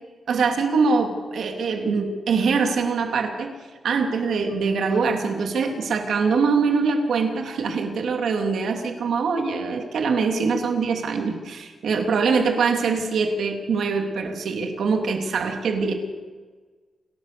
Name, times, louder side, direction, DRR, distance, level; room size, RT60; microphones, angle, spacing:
voice 1, 0.3-3.5 3.8-15.9, right 4 dB, 85° right, 4 dB, 2.8 m, -23 dB
29.0 x 13.5 x 6.8 m, 1.4 s
wide cardioid pair, 120°, 0 cm